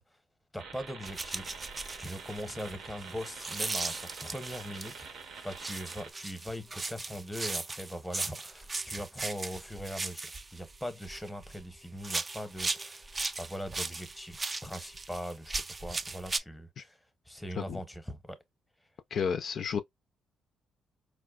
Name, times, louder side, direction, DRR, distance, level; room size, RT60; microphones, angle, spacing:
voice 1, 0.5-1.5 2.0-5.1 5.4-13.1 13.4-17.0 17.3-18.4, equal, 5° left, 0.7 m, -41 dB
sound 1, 0.6-6.1, right 5 dB, 80° right, 0.7 m, -46 dB
sound 2, 1.0-5.1 5.5-11.6 12.0-16.4, right 3 dB, 25° right, 0.3 m, -38 dB
voice 2, 19.1-19.8, left 7 dB, 55° left, 0.3 m, -31 dB
4.4 x 2.1 x 2.2 m
cardioid pair, 90°, 0 cm